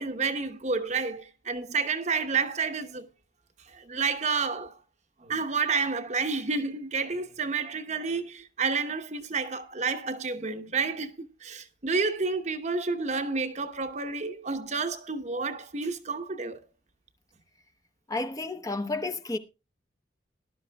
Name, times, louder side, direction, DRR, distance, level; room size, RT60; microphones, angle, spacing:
voice 1, 0.0-3.1 3.7-4.8 5.2-16.6, right 4 dB, 35° right, 0.9 m, -30 dB
voice 2, 18.1-19.4, left 2 dB, 20° left, 0.8 m, -31 dB
18.5 x 11.5 x 2.3 m
head